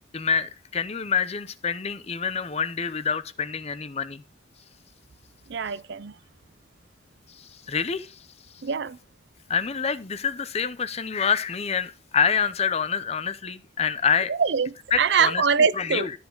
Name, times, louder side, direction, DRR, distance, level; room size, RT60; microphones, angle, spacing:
voice 1, 0.1-4.2 7.4-8.2 9.5-14.3 14.9-15.5 15.7-16.1, left 6 dB, 30° left, 0.6 m, -27 dB
voice 2, 5.5-6.1 8.6-9.0 14.3-16.1, right 6 dB, 60° right, 0.5 m, -23 dB
12.5 x 7.1 x 3.8 m
head